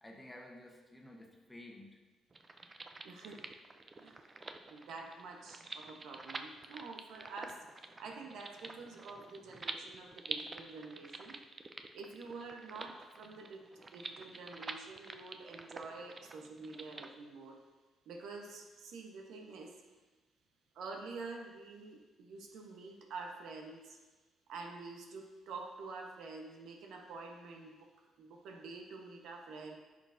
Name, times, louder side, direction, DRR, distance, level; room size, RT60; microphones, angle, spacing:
voice 1, 0.0-2.0 3.2-3.4, left 1 dB, 15° left, 0 dB, 1.2 m, -53 dB
sound 1, 2.3-17.1, right 3 dB, 30° right, 0.5 m, -47 dB
voice 2, 3.0-3.5 4.0-4.4 4.7-11.4 11.9-17.6 18.1-19.8 20.7-24.0 24.5-29.8, right 3 dB, 80° right, 2 dB, 1.1 m, -48 dB
10.5 x 5.9 x 2.7 m, 1.2 s
cardioid pair, 90°, 0 cm